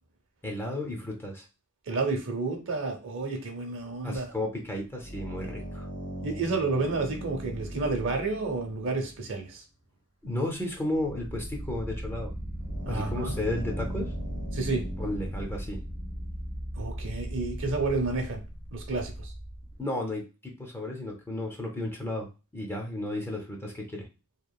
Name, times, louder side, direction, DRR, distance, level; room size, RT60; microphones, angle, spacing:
voice 1, 0.4-1.5 4.0-5.9 10.2-12.3 12.9-14.1 15.0-15.8 19.8-22.3 22.5-24.1, left 1 dB, 10° left, 0 dB, 0.5 m, -33 dB
voice 2, 1.9-4.3 6.2-9.6 12.9-13.4 14.5-14.8 16.8-18.4 18.7-19.3, right 3 dB, 60° right, 3 dB, 0.6 m, -30 dB
sound 1, 4.9-9.2 10.2-10.3 10.7-19.8, right 1 dB, 75° left, 0.9 m, -37 dB
2.9 x 2.4 x 2.2 m, 0.31 s
head